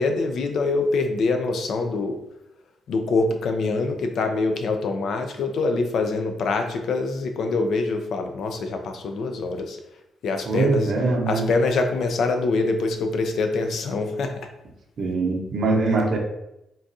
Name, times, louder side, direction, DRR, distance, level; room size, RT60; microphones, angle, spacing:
voice 1, 0.0-2.2 2.9-9.8 10.2-10.9 11.3-14.3, left 3 dB, 70° left, 5 dB, 0.4 m, -24 dB
voice 2, 10.5-11.5 15.0-16.2, right 3 dB, 65° right, 2 dB, 0.7 m, -22 dB
3.8 x 2.4 x 2.6 m, 0.86 s
cardioid pair, 75°, 0 cm